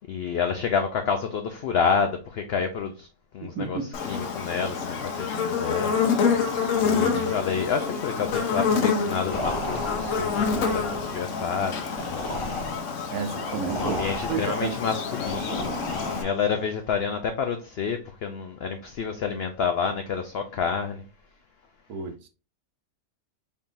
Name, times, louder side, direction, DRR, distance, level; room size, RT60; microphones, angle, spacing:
voice 1, 0.1-3.1 3.3-6.5 6.8-11.8 12.1-12.8 13.7-21.1, left 6 dB, 80° left, 0.5 m, -29 dB
voice 2, 3.4-3.9 6.9-7.4 13.1-14.8 21.9-22.3, right 6 dB, 80° right, 1.2 m, -32 dB
Buzz, 3.9-16.2, left 5 dB, 60° left, 1.0 m, -27 dB
sound 1, 9.3-16.7, left 1 dB, 35° left, 0.5 m, -34 dB
4.2 x 3.6 x 2.5 m
omnidirectional pair, 1.6 m